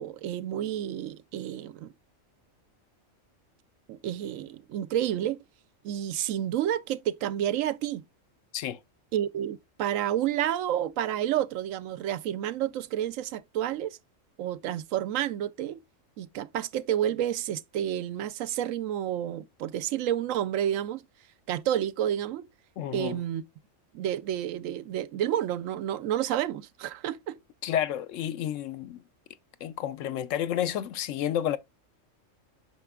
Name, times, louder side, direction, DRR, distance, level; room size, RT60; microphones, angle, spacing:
voice 1, 0.0-1.9 3.9-5.4 5.8-8.0 9.1-14.0 14.4-15.8 16.2-21.0 21.5-22.4 22.9-23.4 23.9-27.4, right 11 dB, 80° right, 0.9 m, -30 dB
voice 2, 22.8-23.2 27.6-29.0 29.6-31.6, left 10 dB, 75° left, 0.9 m, -30 dB
7.6 x 5.8 x 2.3 m
omnidirectional pair, 1.4 m